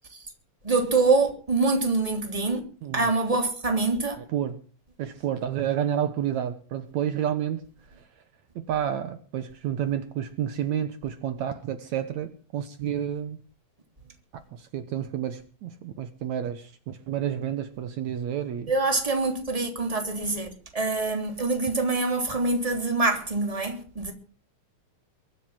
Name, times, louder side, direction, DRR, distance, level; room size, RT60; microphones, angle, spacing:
voice 1, 0.6-2.6 2.9-4.2 18.7-24.1, right 3 dB, 10° right, 3.0 m, -25 dB
voice 2, 5.0-7.6 8.7-13.4 14.3-18.7, right 10 dB, 70° right, 2.3 m, -30 dB
23.0 x 8.3 x 7.5 m
omnidirectional pair, 3.5 m